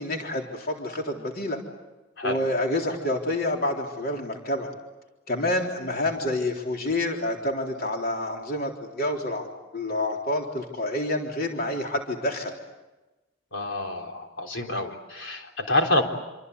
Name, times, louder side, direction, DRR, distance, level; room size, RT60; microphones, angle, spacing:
voice 1, 0.0-1.6 2.2-4.7 5.3-9.5 9.7-12.5, left 1 dB, 50° left, 2 dB, 3.7 m, -28 dB
voice 2, 13.5-16.0, left 1 dB, 70° left, 3 dB, 3.8 m, -27 dB
27.5 x 25.0 x 8.3 m, 1.1 s
head